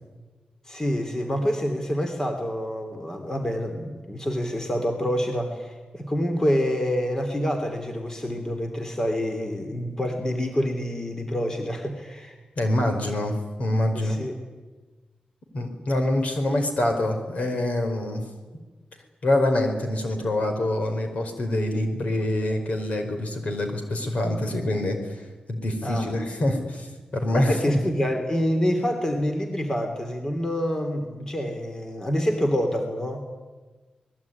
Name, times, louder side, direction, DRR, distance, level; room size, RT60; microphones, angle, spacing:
voice 1, 0.7-12.4 13.9-14.3 25.8-26.1 27.3-33.3, equal, 20° left, 4 dB, 3.1 m, -27 dB
voice 2, 12.6-14.2 15.5-18.2 19.2-25.2 25.5-27.8, left 1 dB, 60° left, 5 dB, 5.0 m, -25 dB
27.0 x 20.5 x 9.6 m, 1.3 s
wide cardioid pair, 130°, 3 cm